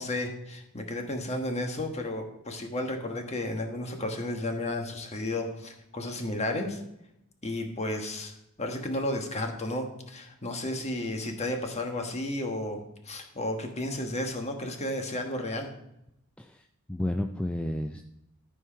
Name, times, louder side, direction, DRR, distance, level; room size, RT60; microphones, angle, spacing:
voice 1, 0.0-6.8 7.4-15.7, left 1 dB, 30° left, 4 dB, 1.4 m, -33 dB
voice 2, 16.4-18.0, left 1 dB, 5° left, 5 dB, 0.3 m, -32 dB
13.5 x 4.6 x 5.7 m, 0.83 s
head